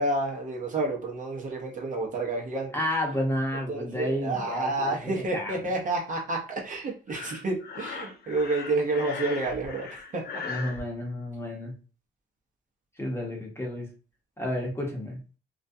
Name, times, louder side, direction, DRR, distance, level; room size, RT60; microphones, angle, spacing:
voice 1, 0.0-2.7 3.7-10.4, right 2 dB, 40° right, -1 dB, 0.8 m, -29 dB
voice 2, 2.7-5.7 10.4-11.7 13.0-13.9 14.4-15.2, left 1 dB, 10° left, -1 dB, 0.9 m, -31 dB
Breathing, 7.1-10.8, left 5 dB, 55° left, 0.5 m, -38 dB
2.4 x 2.2 x 2.6 m, 0.34 s
cardioid pair, 90°, 20 cm